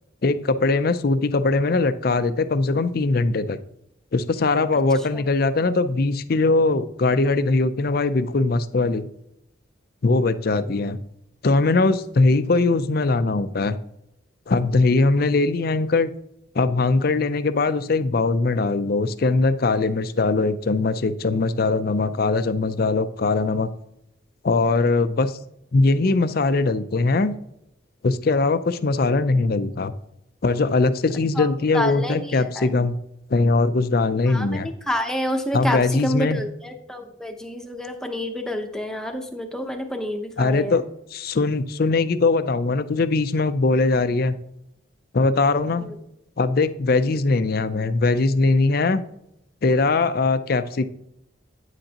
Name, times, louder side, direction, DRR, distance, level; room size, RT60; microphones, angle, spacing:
voice 1, 0.2-3.6 4.1-9.1 10.0-11.0 11.4-13.8 14.5-16.1 16.5-23.7 24.4-25.4 25.7-27.3 28.0-29.9 30.4-33.0 33.3-34.7 35.5-36.4 40.4-40.8 41.1-44.4 45.1-45.9 46.4-49.0 49.6-50.9, left 3 dB, 50° left, 12 dB, 0.5 m, -21 dB
voice 2, 31.3-32.7 34.3-40.8 45.7-46.0, equal, 5° left, 4 dB, 0.8 m, -29 dB
9.8 x 7.8 x 2.9 m, 0.80 s
head